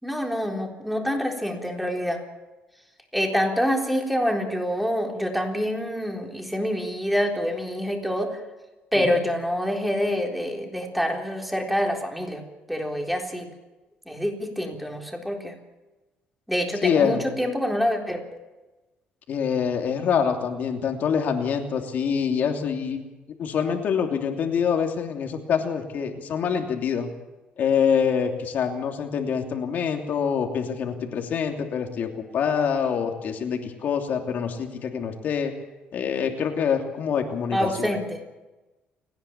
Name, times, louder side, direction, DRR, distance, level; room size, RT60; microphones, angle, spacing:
voice 1, 0.0-2.2 3.1-8.4 8.9-12.4 12.7-13.5 14.1-15.5 16.5-18.4 37.5-38.2, equal, ahead, 2 dB, 3.8 m, -26 dB
voice 2, 16.8-17.3 19.3-23.0 23.4-27.1 27.6-35.5 35.9-37.9, left 7 dB, 55° left, 4 dB, 3.0 m, -25 dB
29.5 x 10.5 x 8.7 m, 1.1 s
cardioid pair, 120°, 4 cm